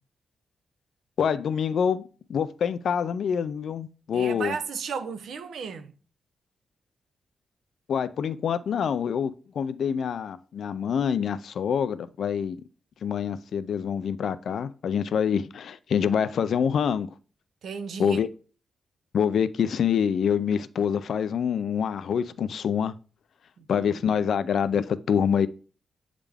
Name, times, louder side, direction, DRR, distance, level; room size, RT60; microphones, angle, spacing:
voice 1, 1.2-4.6 7.9-9.3 9.6-12.6 13.0-17.1 18.0-18.3 19.1-22.9 23.7-25.5, left 7 dB, 65° left, 0.4 m, -26 dB
voice 2, 4.1-5.9 17.6-18.2 23.6-23.9, right 6 dB, 70° right, 0.7 m, -34 dB
8.2 x 3.7 x 3.4 m
wide cardioid pair, 160°, 0 cm